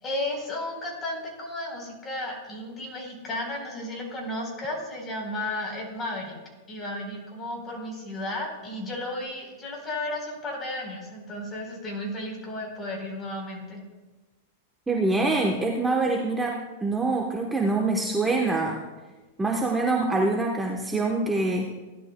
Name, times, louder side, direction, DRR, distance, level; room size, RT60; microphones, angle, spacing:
voice 1, 0.0-6.4 6.7-13.8, left 1 dB, 25° left, 0 dB, 3.9 m, -33 dB
voice 2, 14.9-18.8 19.4-21.7, right 2 dB, 10° right, 0 dB, 1.0 m, -25 dB
16.5 x 11.5 x 2.2 m, 1.2 s
hypercardioid pair, 130°, 0 cm